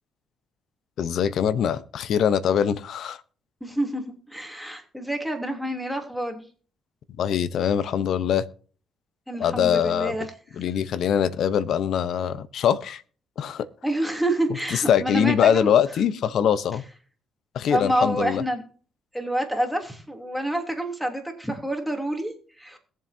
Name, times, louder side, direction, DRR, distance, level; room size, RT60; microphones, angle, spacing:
voice 1, 1.0-3.2 7.2-8.5 9.4-10.1 10.6-13.0 13.4-13.7 14.7-16.8 17.5-18.4, left 8 dB, 70° left, 0.9 m, -23 dB
voice 2, 3.6-4.0 4.3-6.4 9.3-10.2 13.8-15.7 17.7-18.6 19.1-22.3 22.6-22.8, right 1 dB, ahead, 3.0 m, -27 dB
21.0 x 7.5 x 2.8 m
cardioid pair, 90°, 0 cm